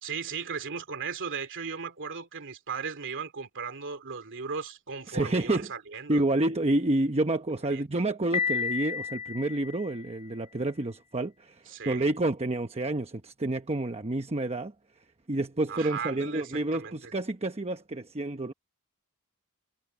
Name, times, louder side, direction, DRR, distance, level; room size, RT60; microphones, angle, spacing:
voice 1, 0.0-6.2 7.7-8.0 11.7-12.0 15.7-17.1, right 5 dB, 60° right, 2.7 m, -37 dB
voice 2, 5.1-5.7 6.1-14.7 15.3-18.5, right 2 dB, 30° right, 1.0 m, -29 dB
Piano, 8.3-10.3, left 6 dB, 25° left, 1.5 m, -32 dB
head